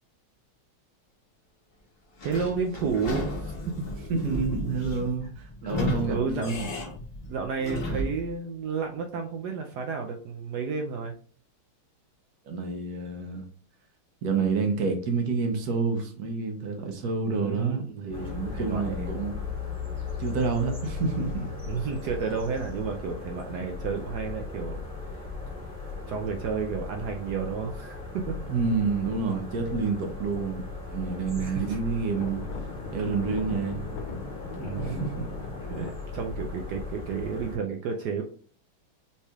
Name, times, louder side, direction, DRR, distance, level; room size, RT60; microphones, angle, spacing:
Sliding door / Squeak, 2.2-8.3, left 1 dB, 50° left, 0.7 m, -34 dB
voice 1, 2.2-3.9 5.0-5.3 6.0-6.6 7.3-11.1 17.3-19.2 21.7-24.8 25.1-25.2 26.1-28.4 31.3-31.8 34.5-35.0 35.7-38.2, right 5 dB, 75° right, 0.9 m, -32 dB
voice 2, 4.1-6.7 12.4-13.4 14.2-19.4 20.2-21.5 28.5-32.5 32.9-33.8 34.8-35.3, right 4 dB, 60° right, 1.2 m, -29 dB
sound 1, 18.1-37.6, left 4 dB, 5° left, 1.2 m, -37 dB
sound 2, 18.9-19.1 19.3-19.4 19.8-19.9 20.5-20.8 21.2-21.3 21.9-22.7 23.2-23.3 23.9-25.8 26.2-26.6 27.1-27.2 27.8-27.9 28.0-29.6 29.9-30.1 30.4-30.5 30.8-30.9 31.1-31.2 31.6-35.9, left 4 dB, 85° left, 1.4 m, -40 dB
5.5 x 3.2 x 2.3 m
omnidirectional pair, 2.2 m